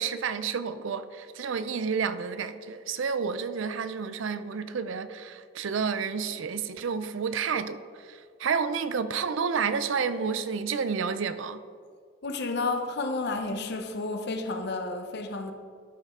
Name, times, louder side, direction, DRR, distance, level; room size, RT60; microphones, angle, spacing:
voice 1, 0.0-11.6, right 6 dB, 65° right, 0.4 m, -30 dB
voice 2, 12.2-15.5, left 3 dB, 55° left, 0.8 m, -31 dB
12.0 x 5.3 x 3.7 m
head